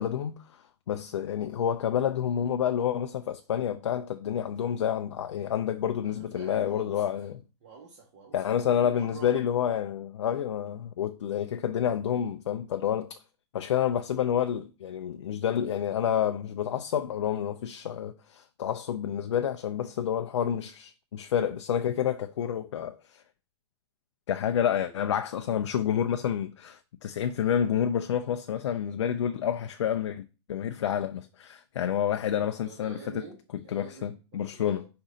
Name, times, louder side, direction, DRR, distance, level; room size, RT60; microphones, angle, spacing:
voice 1, 0.0-7.3 8.3-13.2 13.5-23.2 24.3-30.2 30.5-33.0 33.7-34.8, left 9 dB, 90° left, 0.4 m, -29 dB
voice 2, 6.0-7.3 7.6-9.4 24.7-25.0 32.6-34.9, right 5 dB, 45° right, 1.2 m, -47 dB
5.1 x 2.6 x 3.7 m
hypercardioid pair, 145°, 15 cm